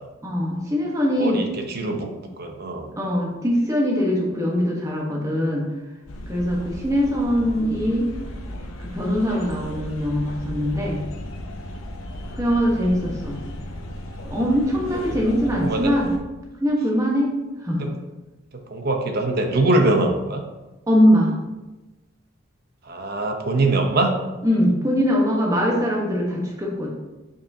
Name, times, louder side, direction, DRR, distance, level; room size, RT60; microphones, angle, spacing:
voice 1, 0.2-1.4 3.0-5.7 6.3-8.1 8.9-11.0 12.4-13.4 14.3-16.1 16.6-17.3 17.6-17.9 20.9-21.3 24.4-26.9, equal, 15° right, -2 dB, 1.2 m, -22 dB
voice 2, 1.2-2.1 2.4-2.9 6.7-6.8 12.2-12.4 15.6-15.9 17.8-17.9 18.5-20.4 22.9-24.1, right 2 dB, 50° right, 4 dB, 0.8 m, -23 dB
sound 1, 6.1-16.2, left 1 dB, 90° left, 0.8 m, -35 dB
7.0 x 5.7 x 2.8 m, 1.1 s
head